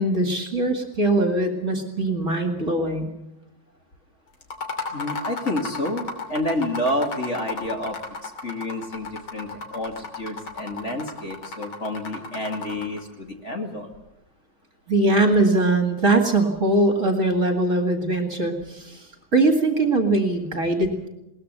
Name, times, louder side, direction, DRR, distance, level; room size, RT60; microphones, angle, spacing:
voice 1, 0.0-3.1 14.9-19.0 19.3-21.1, right 2 dB, 40° right, 5 dB, 2.5 m, -21 dB
sound 1, 4.4-13.0, left 4 dB, 75° left, 3.7 m, -34 dB
voice 2, 4.9-13.9, left 1 dB, 35° left, 3 dB, 2.6 m, -29 dB
21.0 x 19.5 x 6.8 m, 0.88 s
omnidirectional pair, 2.2 m